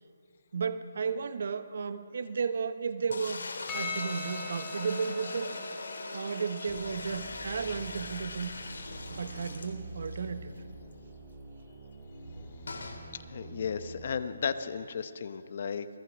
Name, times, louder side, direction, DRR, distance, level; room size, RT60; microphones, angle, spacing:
voice 1, 0.5-3.4 3.7-5.5 6.1-8.5 9.1-10.5, right 5 dB, 50° right, 12 dB, 1.0 m, -33 dB
sound 1, 3.1-10.2 10.6-10.7 10.9-11.0 12.7-13.0, left 3 dB, 75° left, 3.6 m, -41 dB
Percussion, 3.7-8.3, left 3 dB, 10° left, 2.6 m, -42 dB
sound 2, 6.7-14.0, right 2 dB, 15° right, 4.2 m, -46 dB
voice 2, 13.3-16.0, left 6 dB, 40° left, 11 dB, 1.0 m, -34 dB
27.5 x 18.5 x 6.2 m, 2.4 s
hypercardioid pair, 175°, 0 cm